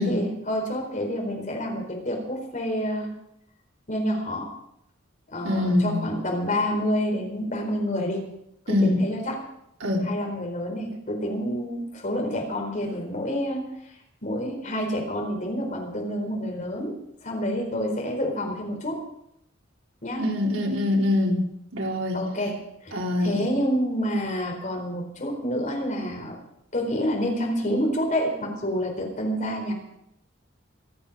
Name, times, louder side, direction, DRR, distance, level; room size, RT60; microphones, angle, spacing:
voice 1, 0.0-3.1 3.9-4.5 5.3-8.2 8.7-9.5 10.0-13.7 14.2-17.0 17.2-19.0 20.0-20.3 22.1-26.4 26.7-29.7, equal, 40° left, 1 dB, 4.4 m, -28 dB
voice 2, 5.4-6.0 8.7-9.0 9.8-10.1 20.2-21.4 21.7-22.2 22.9-23.5, left 1 dB, 85° right, -1 dB, 3.8 m, -23 dB
24.5 x 9.0 x 5.3 m, 0.78 s
head